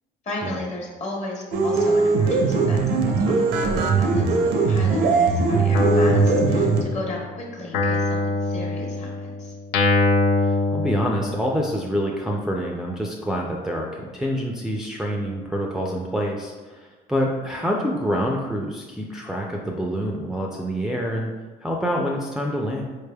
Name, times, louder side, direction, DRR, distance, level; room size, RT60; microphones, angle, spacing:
voice 1, 0.2-9.6, left 2 dB, 40° left, -1 dB, 1.0 m, -35 dB
sound 1, 1.5-6.8, right 4 dB, 75° right, 0.5 m, -20 dB
Guitar, 5.7-7.2 7.7-11.6, left 2 dB, 85° left, 0.5 m, -23 dB
voice 2, 10.4-21.3 21.6-22.8, equal, 5° right, -2 dB, 0.3 m, -26 dB
4.5 x 3.3 x 2.2 m, 1.3 s
cardioid pair, 110°, 17 cm